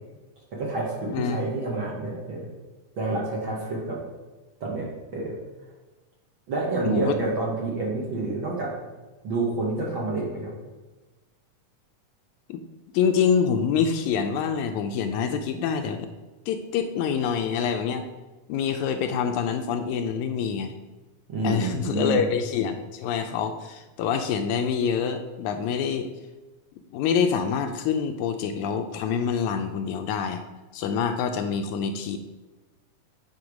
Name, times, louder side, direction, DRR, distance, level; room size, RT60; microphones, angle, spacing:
voice 1, 0.5-2.5 3.0-4.0 4.6-4.9 5.1-5.3 6.5-8.7 9.2-10.5 21.3-22.2, right 3 dB, 55° right, -4 dB, 1.5 m, -28 dB
voice 2, 1.1-1.4 6.8-7.2 12.5-12.6 12.9-16.1 16.5-18.0 18.5-20.7 21.4-26.1 26.9-30.4 30.7-32.2, left 7 dB, 80° left, 6 dB, 1.9 m, -26 dB
9.4 x 4.5 x 4.9 m, 1.2 s
omnidirectional pair, 3.6 m